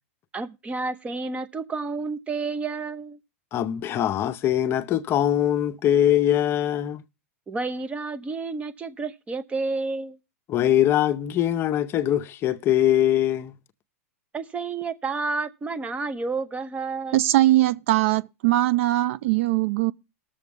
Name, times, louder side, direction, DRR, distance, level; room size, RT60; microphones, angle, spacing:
voice 1, 0.3-3.2 7.5-10.2 14.3-17.2, right 4 dB, 15° right, 0.8 m, -30 dB
voice 2, 3.5-7.0 10.5-13.6, left 11 dB, 30° left, 0.7 m, -22 dB
voice 3, 17.1-19.9, right 16 dB, 60° right, 0.5 m, -21 dB
19.0 x 7.0 x 3.6 m
hypercardioid pair, 130°, 8 cm